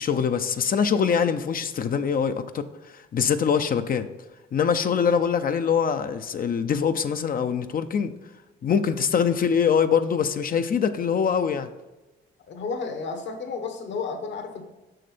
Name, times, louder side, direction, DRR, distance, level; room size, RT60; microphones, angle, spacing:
voice 1, 0.0-4.1 4.5-8.1 8.6-11.7, left 7 dB, 45° left, 9 dB, 0.6 m, -23 dB
voice 2, 12.5-14.6, left 4 dB, 65° left, 6 dB, 1.3 m, -32 dB
6.6 x 6.4 x 4.3 m, 1.1 s
cardioid pair, 90°, 20 cm